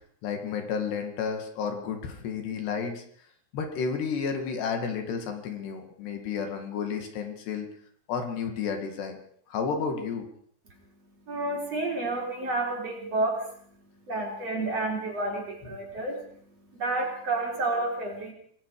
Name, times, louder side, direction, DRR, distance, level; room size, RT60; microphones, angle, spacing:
voice 1, 0.2-3.0 3.5-7.7 8.1-9.2 9.5-10.3, left 6 dB, 75° left, 5 dB, 4.3 m, -31 dB
voice 2, 10.7-18.3, right 2 dB, 35° right, 0 dB, 4.7 m, -31 dB
27.5 x 19.0 x 5.0 m, 0.63 s
omnidirectional pair, 5.0 m